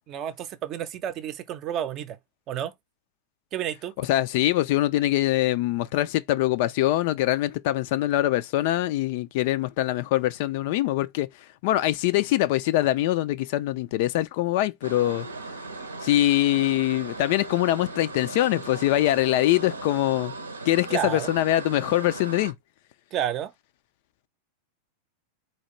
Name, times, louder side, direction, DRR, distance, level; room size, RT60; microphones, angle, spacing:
voice 1, 0.1-2.2 2.5-2.7 3.5-3.9 20.9-21.3 23.1-23.5, right 10 dB, 35° right, 0.6 m, -30 dB
voice 2, 4.0-11.3 11.6-15.3 16.0-20.3 20.7-22.5, left 15 dB, 50° left, 0.3 m, -23 dB
sound 1, 14.8-22.5, right 3 dB, 80° right, 0.7 m, -38 dB
4.2 x 2.9 x 3.0 m
figure-of-eight pair, 90°, 0 cm